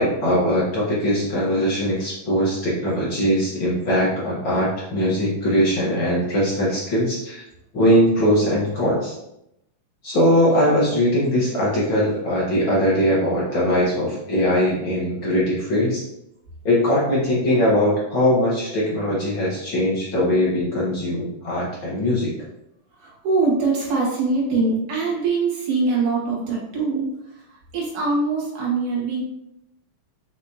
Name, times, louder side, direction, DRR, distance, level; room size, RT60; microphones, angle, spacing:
voice 1, 0.0-7.4 7.7-9.1 10.0-16.0 16.6-22.3, equal, 55° left, -6 dB, 1.4 m, -21 dB
voice 2, 23.0-27.1 27.7-29.2, right 3 dB, 60° right, -4 dB, 3.3 m, -22 dB
6.7 x 6.1 x 2.9 m, 0.82 s
omnidirectional pair, 4.2 m